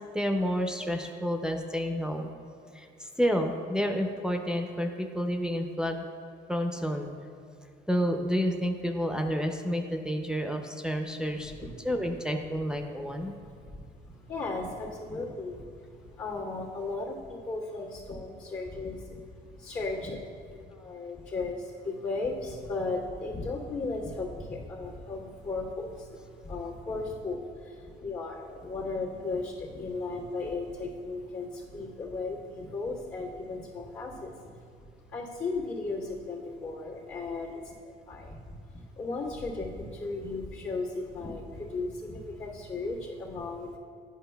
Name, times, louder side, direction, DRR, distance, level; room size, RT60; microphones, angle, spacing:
voice 1, 0.1-2.3 2.7-6.0 6.5-7.1 7.9-11.5 11.8-13.3 16.8-16.9 30.3-30.5, equal, 5° right, 3 dB, 0.4 m, -30 dB
voice 2, 13.4-43.8, left 3 dB, 85° left, -8 dB, 1.6 m, -36 dB
10.0 x 5.2 x 2.3 m, 2.3 s
cardioid pair, 90°, 20 cm